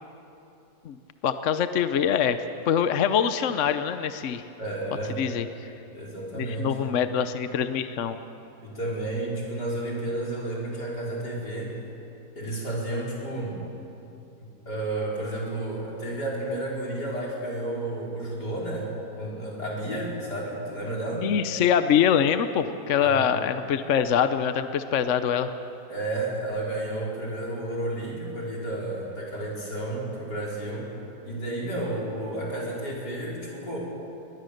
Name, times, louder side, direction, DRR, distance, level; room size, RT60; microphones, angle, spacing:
voice 1, 1.2-2.4 2.7-4.4 5.2-5.7 6.3-8.2 21.2-25.5, left 8 dB, 55° left, 10 dB, 0.9 m, -24 dB
voice 2, 4.6-5.3 5.9-6.9 8.6-11.8 12.4-13.6 14.4-21.3 23.0-23.3 25.9-30.9 31.2-33.8, right 1 dB, 80° left, -4 dB, 5.0 m, -32 dB
22.0 x 20.5 x 6.6 m, 2.8 s
omnidirectional pair, 1.8 m